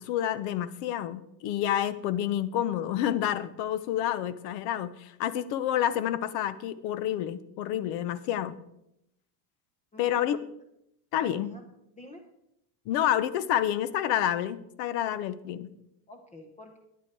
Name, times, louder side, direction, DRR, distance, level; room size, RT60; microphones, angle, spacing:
voice 1, 0.0-8.5 10.0-10.4 11.1-11.5 12.9-15.7, left 11 dB, 60° left, 15 dB, 1.0 m, -29 dB
voice 2, 9.9-10.4 11.1-11.7 11.9-12.2 16.1-16.8, left 1 dB, 15° left, 5 dB, 1.0 m, -47 dB
12.0 x 10.0 x 4.6 m, 0.82 s
supercardioid pair, 145°, 49 cm